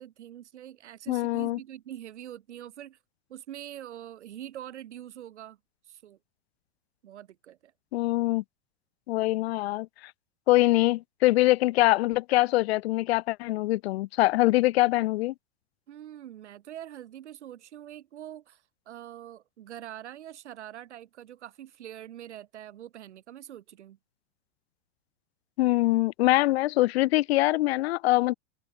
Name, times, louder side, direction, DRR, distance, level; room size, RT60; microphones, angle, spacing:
voice 1, 0.0-3.0 3.3-5.6 5.9-6.2 7.0-7.7 15.9-24.0, right 11 dB, 85° right, 5.0 m, -44 dB
voice 2, 1.1-1.6 7.9-8.4 9.1-9.9 10.5-15.3 25.6-28.3, left 18 dB, 65° left, 0.6 m, -23 dB
supercardioid pair, 140°, 34 cm